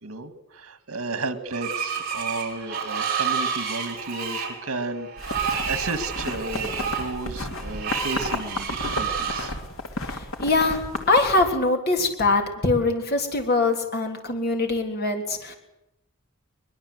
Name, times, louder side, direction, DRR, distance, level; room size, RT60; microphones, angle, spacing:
voice 1, 0.0-9.6, right 3 dB, 80° right, 10 dB, 2.0 m, -33 dB
Screech, 1.5-9.5, right 6 dB, 45° right, 5.8 m, -30 dB
sound 1, 5.2-11.4, left 2 dB, 75° left, 2.7 m, -33 dB
voice 2, 10.1-15.5, left 3 dB, 45° left, 3 dB, 3.4 m, -23 dB
22.0 x 21.5 x 8.0 m, 0.91 s
head